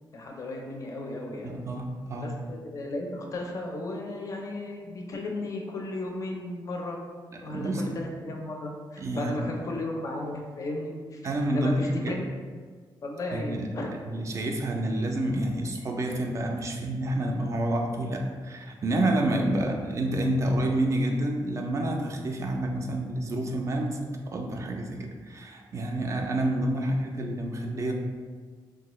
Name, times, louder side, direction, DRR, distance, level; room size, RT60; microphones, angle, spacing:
voice 1, 0.1-1.6 2.2-7.0 7.4-12.1 13.0-14.0 19.4-19.7 26.8-26.9, left 2 dB, 40° left, 1 dB, 0.4 m, -35 dB
voice 2, 1.4-2.4 7.3-8.0 9.0-9.5 11.2-12.2 13.3-13.7 14.1-27.9, right 1 dB, 35° right, 2 dB, 0.4 m, -29 dB
3.5 x 2.2 x 3.0 m, 1.5 s
wide cardioid pair, 160°, 8 cm